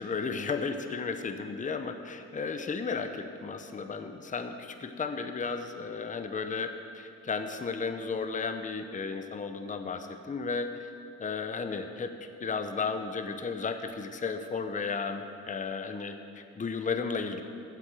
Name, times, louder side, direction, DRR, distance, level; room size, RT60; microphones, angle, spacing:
voice 1, 0.0-10.9 11.2-12.1 12.4-17.4, left 4 dB, 25° left, 7 dB, 0.8 m, -34 dB
8.7 x 7.8 x 8.9 m, 2.7 s
cardioid pair, 90°, 30 cm